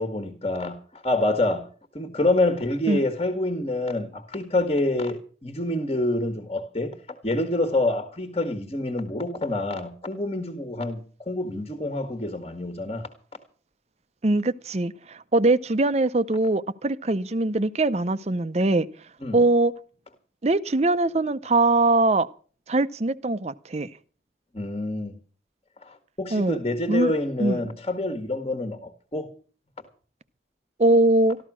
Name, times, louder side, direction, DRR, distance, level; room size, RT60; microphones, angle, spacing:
voice 1, 0.0-1.7 1.9-7.0 7.2-13.1 19.2-19.4 24.5-25.2 25.8-29.3, left 2 dB, 30° left, 1.6 m, -27 dB
voice 2, 14.2-18.9 19.3-19.7 20.4-22.3 22.7-23.9 26.3-26.6 26.9-27.1 27.4-27.6 30.8-31.4, right 2 dB, 35° right, 0.6 m, -22 dB
13.5 x 13.0 x 6.2 m
head